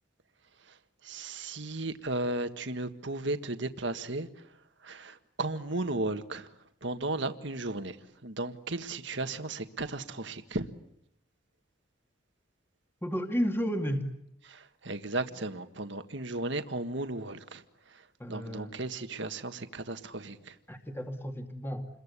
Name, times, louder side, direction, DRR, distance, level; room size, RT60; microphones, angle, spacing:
voice 1, 0.6-4.3 4.8-6.5 6.8-8.0 8.2-10.7 14.4-20.6, right 2 dB, 65° right, 1.7 m, -35 dB
voice 2, 13.0-14.1 18.2-18.7 20.7-21.9, equal, 10° left, 2.2 m, -32 dB
29.0 x 22.5 x 8.4 m
head